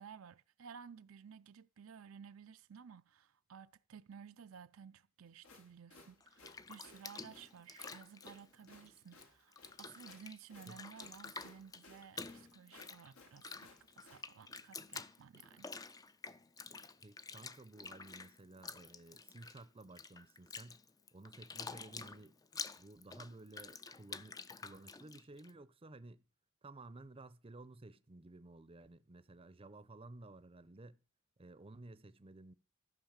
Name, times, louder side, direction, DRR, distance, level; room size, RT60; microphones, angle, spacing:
voice 1, 0.0-13.7 14.0-15.7, right 7 dB, 75° right, 0.5 m, -55 dB
sound 1, 5.3-14.3, left 3 dB, 85° left, 2.3 m, -61 dB
Bathtub (filling or washing), 6.2-9.2 9.5-25.5, left 4 dB, 20° left, 0.4 m, -49 dB
voice 2, 17.0-20.8 21.1-22.4 22.8-26.2 26.6-31.0 31.4-32.5, right 2 dB, 25° right, 0.6 m, -54 dB
13.5 x 5.5 x 7.3 m
head